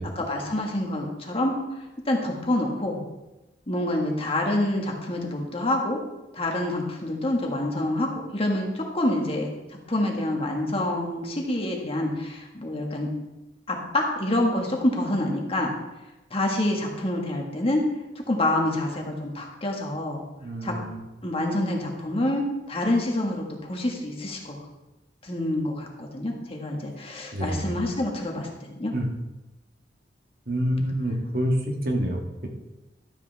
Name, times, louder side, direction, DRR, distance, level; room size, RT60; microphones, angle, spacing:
voice 1, 0.1-1.5 2.1-3.0 3.7-6.0 6.3-8.1 8.3-9.5 9.9-13.1 13.7-15.7 16.3-17.8 18.3-20.2 20.6-20.7 21.2-24.6 25.2-28.9, left 1 dB, 35° left, 1 dB, 1.7 m, -27 dB
voice 2, 20.4-21.0 27.3-27.7 28.9-29.1 30.5-32.2, equal, 55° right, 1 dB, 1.5 m, -27 dB
12.5 x 8.4 x 3.5 m, 1.0 s
head